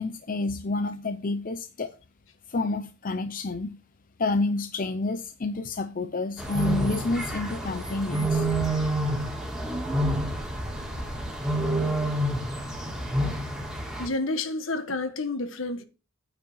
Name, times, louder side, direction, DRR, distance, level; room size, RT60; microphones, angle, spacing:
voice 1, 0.0-1.9 2.5-3.7 4.2-8.5, left 3 dB, 40° left, 0.7 m, -29 dB
sound 1, 6.4-14.1, right 1 dB, 5° right, 2.6 m, -28 dB
voice 2, 7.9-8.2 8.6-8.9 10.7-11.0 13.2-13.3 14.0-15.8, left 2 dB, 65° left, 1.6 m, -31 dB
9.4 x 5.1 x 7.3 m
head